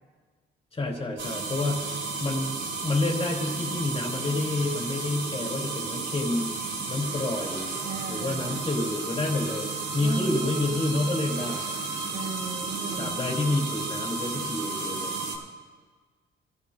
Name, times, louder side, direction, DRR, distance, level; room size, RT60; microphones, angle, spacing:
voice 1, 0.7-1.9 2.2-2.5 2.8-7.8 8.1-11.7 12.9-15.1, left 2 dB, 30° left, 0 dB, 3.7 m, -29 dB
sound 1, 1.2-15.4, right 3 dB, 75° right, 4.7 m, -33 dB
voice 2, 7.8-8.7 10.0-10.8 12.1-13.2, right 5 dB, 55° right, 4 dB, 1.8 m, -36 dB
28.0 x 15.0 x 2.3 m, 1.5 s
cardioid pair, 90°, 20 cm